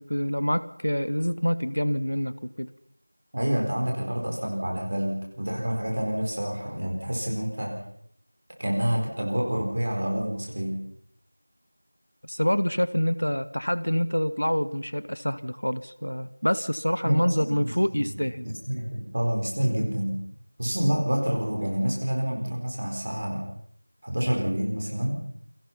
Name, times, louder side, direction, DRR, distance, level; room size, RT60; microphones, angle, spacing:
voice 1, 0.0-2.7 12.2-18.5, equal, 65° left, 14 dB, 1.5 m, -26 dB
voice 2, 3.3-7.7 8.6-10.8 17.0-18.1 18.4-20.2 20.6-23.4 24.0-25.2, equal, 25° right, 0 dB, 4.4 m, -28 dB
28.5 x 22.5 x 5.7 m, 0.70 s
figure-of-eight pair, 175°, 0 cm